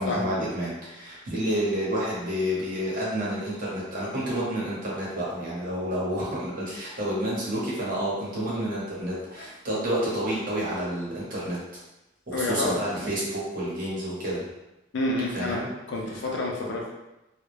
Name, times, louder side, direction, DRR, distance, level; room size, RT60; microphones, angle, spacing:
voice 1, 0.0-11.6 12.3-14.4 15.3-15.7, equal, 45° right, -7 dB, 0.9 m, -29 dB
voice 2, 12.3-12.8 14.9-15.6 15.9-16.9, left 2 dB, 65° left, -1 dB, 0.5 m, -28 dB
2.3 x 2.0 x 3.1 m, 0.98 s
head